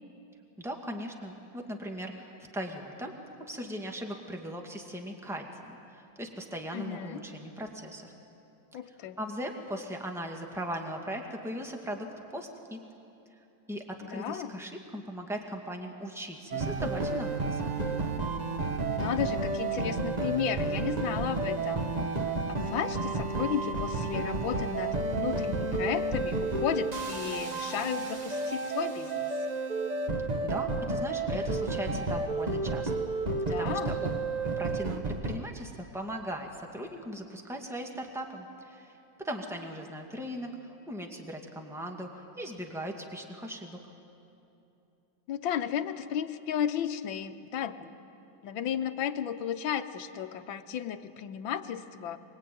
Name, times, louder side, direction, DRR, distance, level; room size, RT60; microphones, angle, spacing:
voice 1, 0.6-8.1 9.2-12.1 12.3-12.8 13.7-17.8 30.4-32.9 33.6-34.1 34.6-43.8, equal, ahead, 2 dB, 1.9 m, -39 dB
voice 2, 6.7-7.2 8.7-9.2 14.0-14.6 18.7-21.9 22.5-29.3 33.3-34.0 45.3-47.9 48.4-52.2, left 9 dB, 80° left, 8 dB, 1.7 m, -34 dB
sound 1, 16.5-35.4, right 3 dB, 30° right, 0.7 m, -31 dB
23.0 x 22.5 x 9.3 m, 2.7 s
omnidirectional pair, 2.1 m